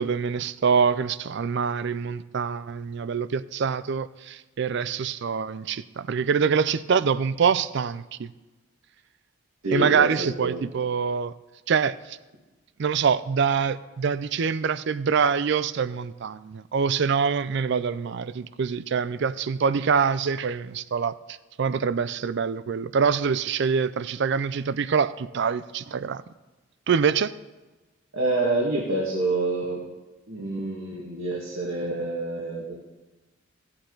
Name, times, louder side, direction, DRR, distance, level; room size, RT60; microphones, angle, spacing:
voice 1, 0.0-8.3 9.7-11.3 11.7-12.2 12.8-26.2 26.9-27.3, right 6 dB, 60° right, 0.4 m, -25 dB
voice 2, 9.6-10.6 13.6-13.7 28.1-29.8 30.3-32.7, right 2 dB, 85° right, 1.9 m, -27 dB
16.5 x 8.8 x 3.9 m
head